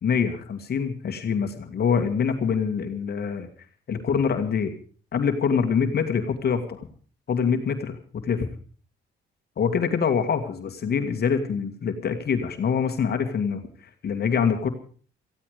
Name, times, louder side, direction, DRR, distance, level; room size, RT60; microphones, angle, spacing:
voice 1, 0.0-3.5 3.9-4.7 5.1-6.9 7.3-8.0 8.2-8.5 9.6-13.6 14.0-14.7, left 6 dB, 55° left, 6 dB, 2.1 m, -25 dB
18.5 x 15.0 x 5.1 m, 0.41 s
cardioid pair, 90°, 20 cm